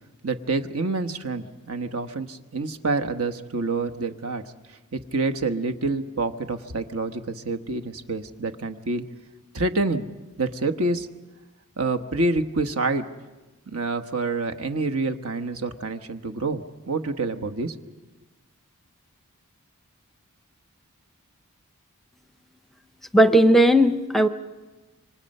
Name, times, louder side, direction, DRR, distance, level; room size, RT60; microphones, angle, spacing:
voice 1, 0.2-4.4 4.7-9.0 9.5-10.1 10.4-11.1 11.8-13.1 13.7-17.7, right 3 dB, 70° right, 7 dB, 1.2 m, -27 dB
voice 2, 23.1-24.3, equal, ahead, 9 dB, 0.7 m, -16 dB
27.5 x 25.0 x 5.5 m, 1.2 s
head